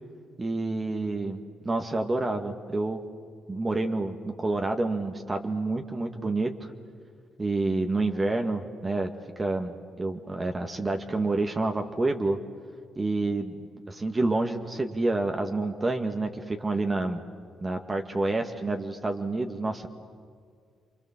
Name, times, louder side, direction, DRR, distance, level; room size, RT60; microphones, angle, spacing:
voice 1, 0.4-3.0 3.5-6.7 7.4-9.1 9.4-12.4 13.0-13.6 13.9-17.2 17.6-19.9, right 2 dB, 30° right, 4 dB, 2.0 m, -28 dB
29.5 x 26.0 x 7.5 m, 2.1 s
hypercardioid pair, 45°, 0 cm